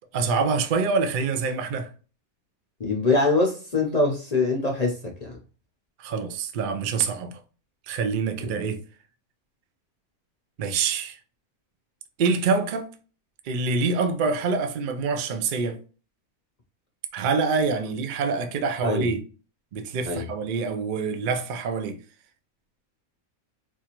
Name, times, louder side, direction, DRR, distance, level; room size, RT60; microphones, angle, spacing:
voice 1, 0.1-1.9 6.0-7.4 7.9-8.8 10.6-11.2 12.2-12.9 13.4-15.8 17.1-19.2 19.7-22.0, right 4 dB, 70° right, 0.4 m, -26 dB
voice 2, 2.8-5.4 18.8-19.1 20.0-20.3, left 3 dB, 45° left, 0.5 m, -23 dB
4.4 x 2.4 x 2.9 m
omnidirectional pair, 1.6 m